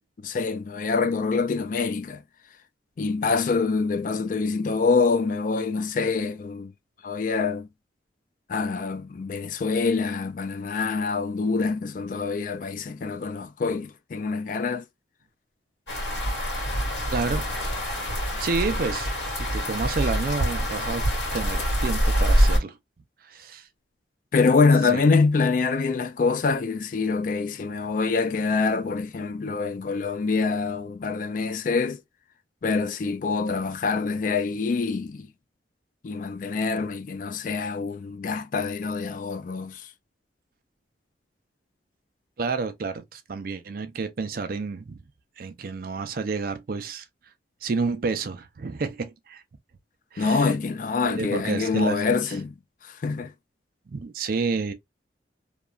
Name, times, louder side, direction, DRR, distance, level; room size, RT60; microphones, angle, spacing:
voice 1, 0.2-2.2 3.0-6.7 7.0-7.7 8.5-14.8 24.3-32.0 32.6-35.3 36.0-39.8 50.2-52.5 52.8-53.3, left 4 dB, 45° left, 0.3 m, -25 dB
sound 1, 15.9-22.6, equal, 85° left, 1.7 m, -25 dB
voice 2, 17.1-17.5 18.4-19.1 19.4-22.8 23.2-23.7 24.9-25.0 42.4-45.0 45.4-47.0 47.6-49.4 50.1-50.5 51.0-52.4 53.9-54.7, right 4 dB, 50° right, 0.4 m, -30 dB
2.9 x 2.3 x 2.3 m
head